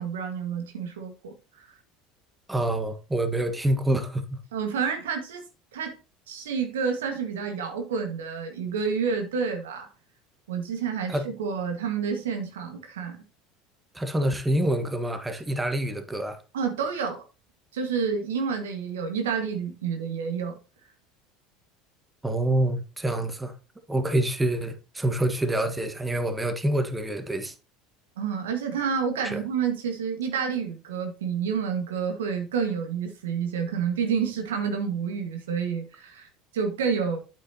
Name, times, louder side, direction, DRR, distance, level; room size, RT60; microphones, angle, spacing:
voice 1, 0.0-1.6 4.5-5.4 5.7-6.0 6.3-9.9 10.5-13.2 16.5-17.2 17.7-20.5 28.2-37.2, right 6 dB, 80° right, 1.7 m, -29 dB
voice 2, 2.5-4.4 11.1-11.2 13.9-16.4 22.2-23.5 23.9-27.5 29.2-29.4, right 1 dB, 10° right, 1.5 m, -26 dB
8.8 x 7.5 x 2.9 m
hypercardioid pair, 75°, 0 cm